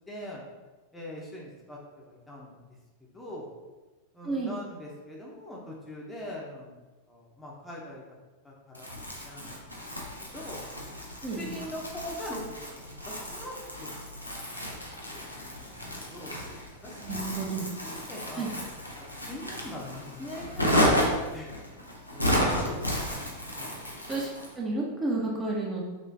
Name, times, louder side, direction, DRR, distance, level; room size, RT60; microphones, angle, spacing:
voice 1, 0.1-0.4 0.9-2.6 3.0-3.5 4.1-6.7 7.1-8.0 8.4-9.6 10.2-10.6 11.3-13.9 14.2-14.4 15.1-15.2 15.6-15.7 16.1-16.3 16.8-18.6 19.3-21.5 22.1-22.8 23.6-23.7, left 1 dB, 10° left, -4 dB, 0.9 m, -42 dB
Crumpling crinkling, 8.7-24.5, equal, 85° left, 0.8 m, -32 dB
voice 2, 11.2-11.6 15.7-16.1 17.0-17.7 18.4-18.5 24.1-25.8, right 3 dB, 20° right, -3 dB, 0.9 m, -32 dB
6.2 x 3.0 x 2.8 m, 1.2 s
figure-of-eight pair, 90°, 0 cm